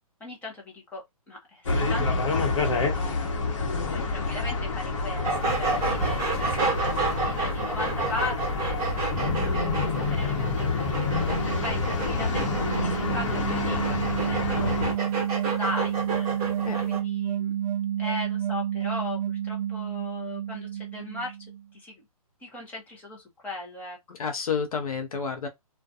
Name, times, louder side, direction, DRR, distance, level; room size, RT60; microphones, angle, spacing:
voice 1, 0.2-3.1 3.9-15.0 15.4-17.6 18.0-21.4 21.7-22.0 22.4-24.0, left 2 dB, 10° left, 0.7 m, -38 dB
sound 1, 1.7-14.9, left 3 dB, 55° left, 0.9 m, -28 dB
voice 2, 3.7-4.0 16.6-16.8 24.2-25.5, left 6 dB, 70° left, 0.6 m, -30 dB
sound 2, 5.2-17.0, right 4 dB, 20° right, 1.0 m, -31 dB
sound 3, 11.5-21.6, right 10 dB, 65° right, 0.6 m, -30 dB
2.3 x 2.2 x 2.6 m
hypercardioid pair, 150°, 19 cm